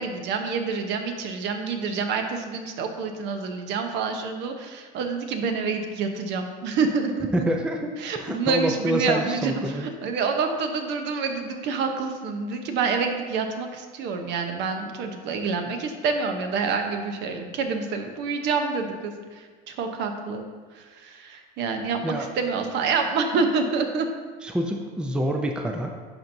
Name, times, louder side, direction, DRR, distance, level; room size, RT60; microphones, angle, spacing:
voice 1, 0.0-7.4 8.0-20.5 20.7-24.1, right 5 dB, 60° right, 5 dB, 0.9 m, -27 dB
voice 2, 7.3-7.9 8.1-9.9 22.0-22.3 24.4-25.9, right 1 dB, 5° right, 2 dB, 0.4 m, -27 dB
11.0 x 4.4 x 2.7 m, 1.5 s
cardioid pair, 125°, 20 cm